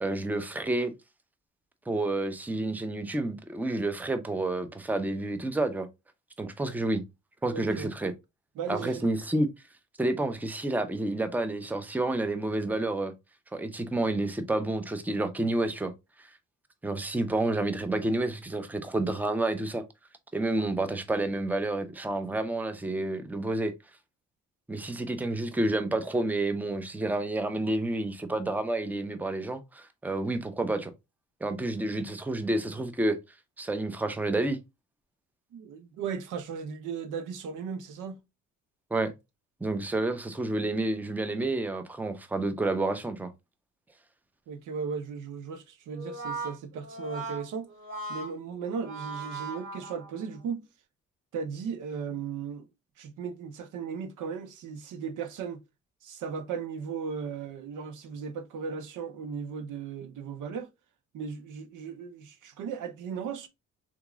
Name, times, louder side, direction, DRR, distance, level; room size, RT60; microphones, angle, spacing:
voice 1, 0.0-0.9 1.9-5.9 6.4-7.0 7.4-8.1 8.7-9.5 10.0-13.1 13.5-15.9 16.2-16.3 16.8-19.8 20.3-23.7 24.7-30.9 31.4-33.2 33.6-34.6 38.9-39.1 39.6-43.3, right 2 dB, 5° right, 0.6 m, -29 dB
voice 2, 7.5-7.9 8.6-9.1 35.5-38.2 44.5-47.7 48.1-50.6 51.3-52.7 53.0-55.6 56.0-60.7 61.1-63.5, right 6 dB, 85° right, 0.8 m, -36 dB
Brass instrument, 45.9-50.4, right 2 dB, 40° right, 1.9 m, -39 dB
3.8 x 2.9 x 2.3 m
cardioid pair, 90°, 30 cm